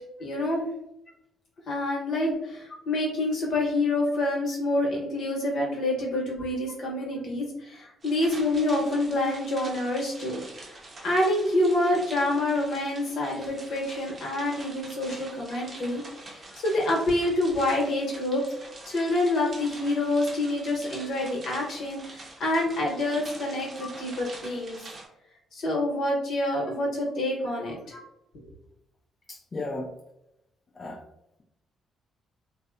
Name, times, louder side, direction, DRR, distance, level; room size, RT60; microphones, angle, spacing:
voice 1, 0.2-0.7 1.7-18.4 18.9-24.8 25.5-28.0 28.3-28.5, left 1 dB, 70° left, -2 dB, 0.9 m, -27 dB
sound 1, 8.0-25.1, right 2 dB, 40° right, 0.6 m, -45 dB
voice 2, 29.3-29.9 30.7-31.0, left 2 dB, 35° left, -2 dB, 0.4 m, -36 dB
2.7 x 2.0 x 2.4 m, 0.83 s
cardioid pair, 90°, 0 cm